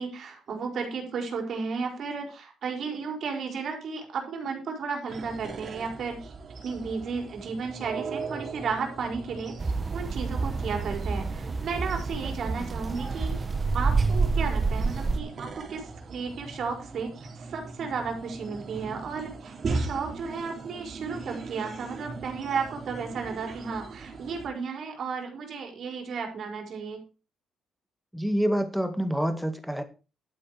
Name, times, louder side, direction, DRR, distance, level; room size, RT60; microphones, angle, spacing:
voice 1, 0.0-6.3 6.6-13.4 13.7-27.0, right 5 dB, 60° right, 3 dB, 4.5 m, -34 dB
sound 1, 5.1-24.5, right 3 dB, 45° right, 4.4 m, -38 dB
sound 2, 9.6-15.2, right 4 dB, 30° right, 1.2 m, -28 dB
voice 2, 28.1-29.8, equal, ahead, 8 dB, 2.2 m, -27 dB
12.0 x 8.7 x 4.7 m, 0.32 s
cardioid pair, 90°, 0 cm